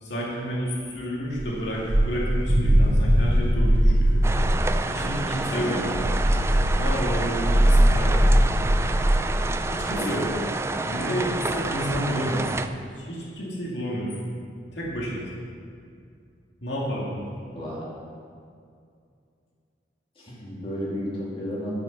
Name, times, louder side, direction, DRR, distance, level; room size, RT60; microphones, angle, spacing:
voice 1, 0.0-4.2 4.9-5.8 6.7-8.3 9.7-10.3 10.8-14.3 14.7-15.4 16.6-17.3, equal, 80° left, -4 dB, 2.2 m, -30 dB
sound 1, 1.4-4.6 5.8-9.2, equal, 80° right, 2.5 m, -20 dB
sound 2, 4.2-12.7, right 3 dB, 15° right, 0.3 m, -29 dB
voice 2, 5.5-5.9 9.9-10.3 17.5-17.9 20.2-21.7, equal, 30° left, -6 dB, 2.6 m, -32 dB
12.5 x 6.2 x 6.0 m, 2.3 s
head